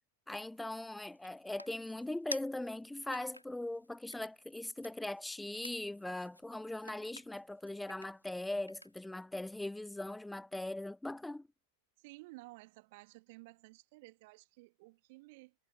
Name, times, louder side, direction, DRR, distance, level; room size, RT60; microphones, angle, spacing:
voice 1, 0.3-11.5, left 1 dB, 5° left, 0.3 m, -40 dB
sound 1, 0.5-9.2, equal, 90° left, 4.3 m, -52 dB
voice 2, 12.0-15.5, right 23 dB, 50° right, 3.2 m, -54 dB
figure-of-eight pair, 90°, 0 cm